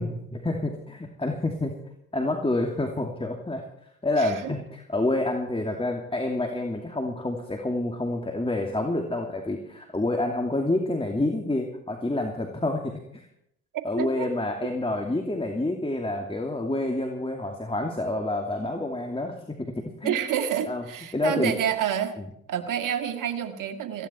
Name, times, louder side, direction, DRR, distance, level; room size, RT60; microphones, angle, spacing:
voice 1, 0.0-1.7 2.1-3.6 4.0-13.3 13.8-20.2 20.7-20.8 21.1-21.5 22.2-22.3, left 2 dB, 15° left, 3 dB, 2.7 m, -28 dB
voice 2, 4.2-4.5 14.0-14.3 20.0-22.2 22.5-24.1, right 9 dB, 70° right, 7 dB, 2.0 m, -28 dB
19.0 x 15.5 x 4.5 m, 0.75 s
supercardioid pair, 50°, 33 cm